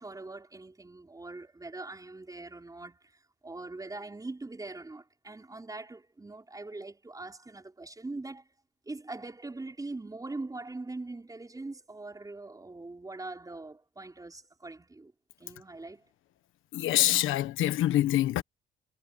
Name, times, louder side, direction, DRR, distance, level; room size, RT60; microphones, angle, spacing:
voice 1, 0.0-8.5 8.9-15.1 15.4-16.0, right 2 dB, 15° right, 4.8 m, -42 dB
voice 2, 16.7-18.4, left 14 dB, 85° left, 1.3 m, -25 dB
cardioid pair, 90°, 20 cm